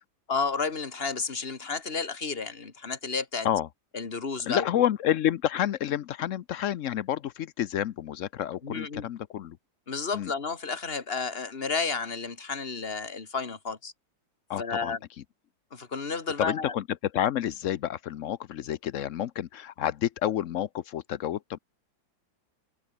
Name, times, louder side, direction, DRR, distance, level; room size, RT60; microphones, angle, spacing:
voice 1, 0.3-3.5 3.9-4.6 8.6-9.1 9.9-13.9 14.6-15.0 15.7-16.7, left 4 dB, 30° left, 2.2 m, -32 dB
voice 2, 4.5-9.6 10.1-10.3 14.5-15.0 16.4-16.8 17.1-21.6, left 11 dB, 85° left, 0.6 m, -29 dB
omnidirectional pair, 2.2 m